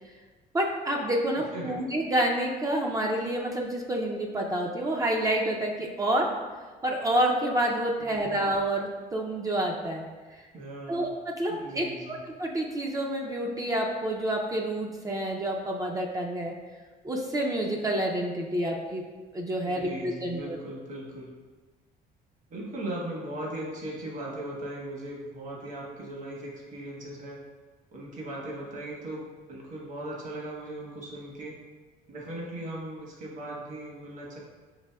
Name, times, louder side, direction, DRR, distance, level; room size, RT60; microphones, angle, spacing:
voice 1, 0.5-6.3 6.8-10.4 10.9-11.1 11.4-16.5 17.0-19.0 19.3-20.6, right 1 dB, 20° right, -1 dB, 0.4 m, -28 dB
voice 2, 8.0-8.3 10.5-11.1 11.5-12.2 19.6-21.3 22.5-27.4 27.9-31.6 32.1-34.4, right 1 dB, 50° right, -2 dB, 1.1 m, -38 dB
6.1 x 2.6 x 2.2 m, 1.3 s
cardioid pair, 110°, 17 cm